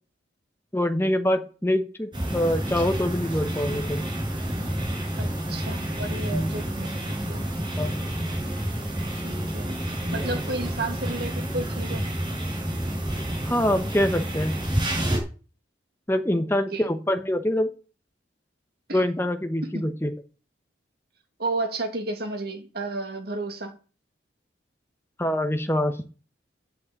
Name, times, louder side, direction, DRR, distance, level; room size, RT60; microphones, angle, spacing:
voice 1, 0.7-4.1 6.3-6.5 7.8-8.0 13.4-14.6 16.1-17.7 18.9-20.1 25.2-26.0, left 1 dB, 10° left, 1.1 m, -25 dB
sound 1, 2.1-15.2, right 1 dB, 25° right, 6.1 m, -29 dB
voice 2, 5.2-7.5 9.1-9.7 10.1-12.1 16.3-16.4 16.7-16.9 18.9-19.0 19.6-19.8 21.4-23.7, right 2 dB, 55° right, 2.6 m, -32 dB
9.7 x 8.5 x 8.3 m
head